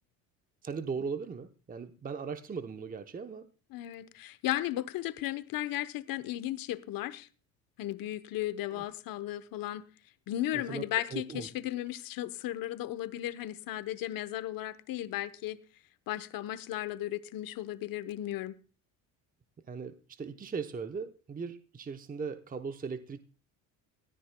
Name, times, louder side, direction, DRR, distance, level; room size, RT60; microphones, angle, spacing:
voice 1, 0.6-3.5 8.7-8.8 10.5-10.8 11.1-11.5 19.7-23.2, right 5 dB, 20° right, 0.8 m, -38 dB
voice 2, 3.7-7.3 7.8-9.9 10.3-15.6 16.1-18.5, left 14 dB, 60° left, 1.0 m, -35 dB
20.0 x 14.0 x 2.2 m
supercardioid pair, 80°, 39 cm